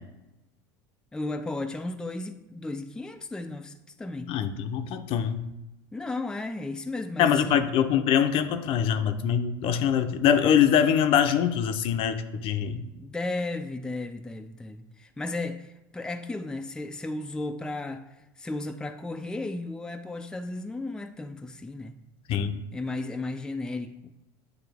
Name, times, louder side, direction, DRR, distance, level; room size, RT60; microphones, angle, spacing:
voice 1, 1.1-4.3 5.9-7.6 12.7-18.1 18.4-22.0 22.7-24.1, left 2 dB, 5° left, 7 dB, 0.4 m, -34 dB
voice 2, 4.3-5.5 7.2-12.8 22.3-22.6, left 8 dB, 55° left, 9 dB, 0.6 m, -23 dB
9.1 x 3.3 x 3.5 m, 0.96 s
supercardioid pair, 100°, 11 cm